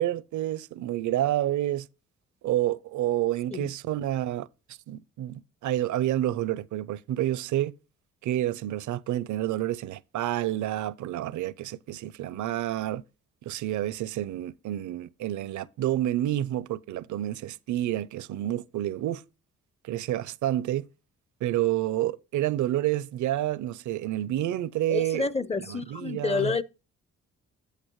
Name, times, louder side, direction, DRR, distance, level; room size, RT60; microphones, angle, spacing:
voice 1, 0.0-1.9 2.4-4.5 4.9-7.7 8.2-13.0 13.4-19.2 19.8-20.9 21.4-25.3 25.7-26.5, right 13 dB, 70° right, 0.6 m, -29 dB
voice 2, 24.9-26.6, left 4 dB, 20° left, 0.7 m, -29 dB
8.2 x 8.2 x 3.1 m
supercardioid pair, 60°, 31 cm